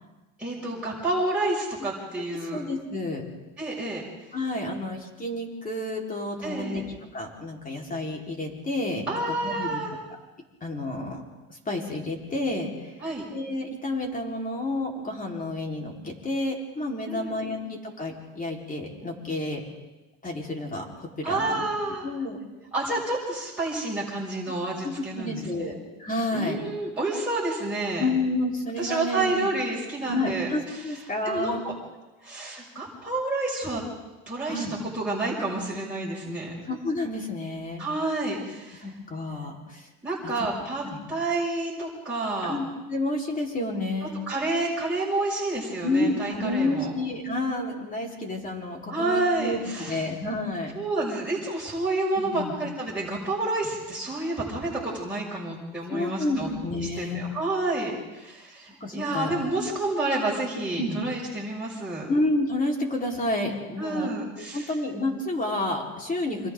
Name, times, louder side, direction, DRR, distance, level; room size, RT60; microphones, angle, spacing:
voice 1, 0.4-2.6 3.6-4.0 6.4-6.9 9.1-9.9 13.0-13.2 17.1-17.6 21.2-22.1 22.7-25.7 26.3-28.1 28.8-30.5 30.7-30.8 31.2-31.7 32.2-33.8 34.3-34.6 34.9-36.5 37.8-38.9 40.0-40.8 41.1-42.6 44.3-46.9 48.9-50.0 50.7-56.5 56.9-62.1 63.8-64.7, right 2 dB, 5° right, -8 dB, 6.5 m, -29 dB
voice 2, 2.5-3.2 4.3-6.8 7.1-9.8 10.6-11.2 11.5-12.9 13.3-19.6 20.2-21.6 22.0-22.4 24.8-26.6 28.0-29.3 30.1-31.6 34.4-34.7 36.6-37.9 38.8-39.9 40.8-41.0 42.4-44.2 45.8-50.7 52.2-52.5 55.9-57.3 58.8-59.3 60.8-61.0 62.1-64.1 64.5-66.5, left 2 dB, 20° left, 0 dB, 4.4 m, -30 dB
29.5 x 26.5 x 3.9 m, 1.1 s
cardioid pair, 120°, 39 cm